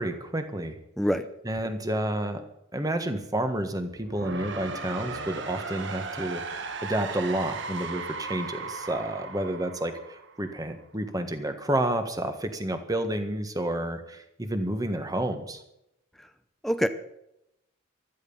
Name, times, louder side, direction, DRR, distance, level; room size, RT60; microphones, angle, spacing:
voice 1, 0.0-0.8 1.4-2.4 2.7-15.6, right 1 dB, 20° right, 7 dB, 1.6 m, -30 dB
voice 2, 1.0-1.3 16.2-16.3 16.6-16.9, equal, ahead, 8 dB, 0.8 m, -25 dB
sound 1, 3.9-10.8, right 4 dB, 60° right, 1.4 m, -37 dB
16.0 x 13.0 x 5.6 m, 0.81 s
head